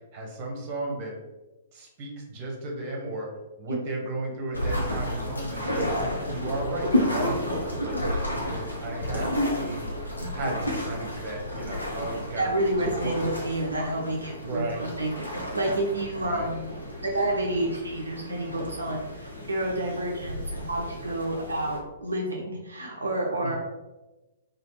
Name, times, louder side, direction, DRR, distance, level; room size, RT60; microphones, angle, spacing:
voice 1, 0.1-1.1 1.7-3.3 3.6-5.9 6.3-9.3 9.6-9.9 10.3-12.6 13.0-13.2 14.4-14.8 16.2-16.5 23.4-23.6, right 2 dB, 35° right, 0 dB, 0.8 m, -34 dB
sound 1, 4.5-21.8, left 1 dB, 80° left, 0.8 m, -32 dB
voice 2, 12.4-16.7 17.0-23.6, right 1 dB, 70° right, -1 dB, 0.4 m, -29 dB
3.1 x 2.3 x 3.1 m, 1.1 s
figure-of-eight pair, 115°, 0 cm